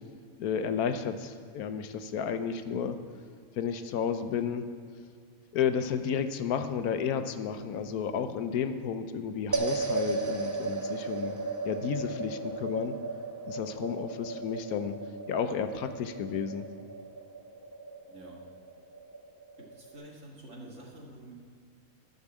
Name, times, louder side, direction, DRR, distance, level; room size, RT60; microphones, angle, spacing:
voice 1, 0.4-3.0 3.6-4.7 5.5-11.3 11.6-13.0 13.5-14.9 15.3-16.7, left 7 dB, 85° left, 9 dB, 1.2 m, -32 dB
sound 1, 9.5-20.0, right 3 dB, 25° right, 0.4 m, -36 dB
voice 2, 18.1-18.4 19.6-21.3, right 1 dB, 55° right, -2 dB, 2.2 m, -48 dB
12.0 x 5.3 x 7.4 m, 2.2 s
omnidirectional pair, 1.5 m